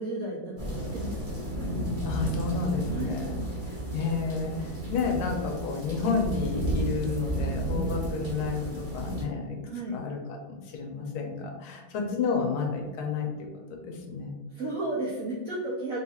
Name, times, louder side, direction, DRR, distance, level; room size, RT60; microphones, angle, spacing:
voice 1, 0.0-1.4 2.9-3.2 9.6-10.0 14.5-16.0, right 2 dB, 70° right, -5 dB, 0.8 m, -33 dB
sound 1, 0.6-9.2, right 1 dB, 25° right, 0.7 m, -32 dB
voice 2, 2.0-3.4 3.9-9.6 9.9-13.3 13.7-14.4, left 5 dB, 90° left, 2 dB, 1.6 m, -31 dB
3.8 x 2.4 x 4.1 m, 1.2 s
omnidirectional pair, 2.3 m